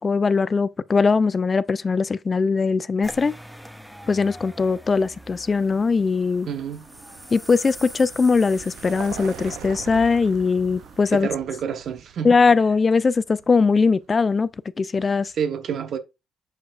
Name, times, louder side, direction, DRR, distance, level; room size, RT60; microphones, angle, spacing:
voice 1, 0.0-3.3 4.1-6.5 7.3-11.3 12.2-14.5 14.8-15.3, left 4 dB, 35° left, 0.3 m, -20 dB
sound 1, 3.0-11.2, equal, 5° right, 0.8 m, -44 dB
Vehicle, 5.5-14.3, right 10 dB, 90° right, 0.5 m, -43 dB
voice 2, 6.5-6.8 11.1-12.3 15.3-16.0, right 7 dB, 60° right, 1.0 m, -28 dB
7.2 x 5.6 x 2.4 m
cardioid pair, 90°, 0 cm